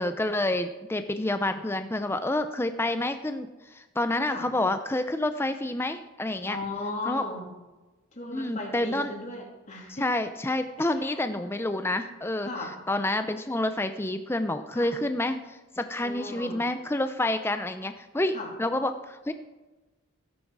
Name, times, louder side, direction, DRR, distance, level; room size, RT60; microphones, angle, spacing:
voice 1, 0.0-6.6 7.1-7.2 8.3-9.1 10.0-12.5 12.9-19.3, left 1 dB, 10° left, 9 dB, 0.5 m, -28 dB
voice 2, 6.5-7.5 8.1-10.1 11.0-11.2 12.5-12.7 14.7-14.9 16.0-16.7 18.3-18.5, left 2 dB, 35° left, -1 dB, 2.6 m, -36 dB
15.5 x 9.4 x 4.7 m, 1.2 s
head